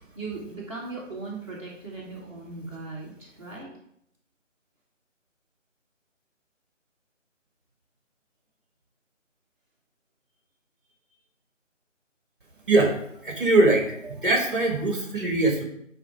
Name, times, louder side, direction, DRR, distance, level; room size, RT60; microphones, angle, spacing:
voice 1, 0.1-3.7, right 3 dB, 25° right, -8 dB, 1.2 m, -38 dB
voice 2, 13.2-15.6, right 2 dB, 40° right, 2 dB, 1.6 m, -22 dB
9.3 x 3.3 x 4.8 m, 0.71 s
figure-of-eight pair, 155°, 38 cm